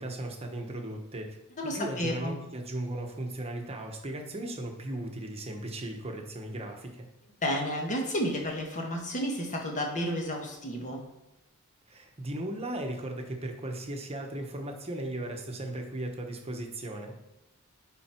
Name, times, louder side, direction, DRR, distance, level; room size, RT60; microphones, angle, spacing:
voice 1, 0.0-1.4 1.6-7.1 11.9-17.2, right 1 dB, 25° right, 3 dB, 1.1 m, -37 dB
voice 2, 1.6-2.3 7.4-11.0, equal, 35° left, 1 dB, 1.4 m, -31 dB
10.0 x 3.9 x 4.5 m, 0.94 s
head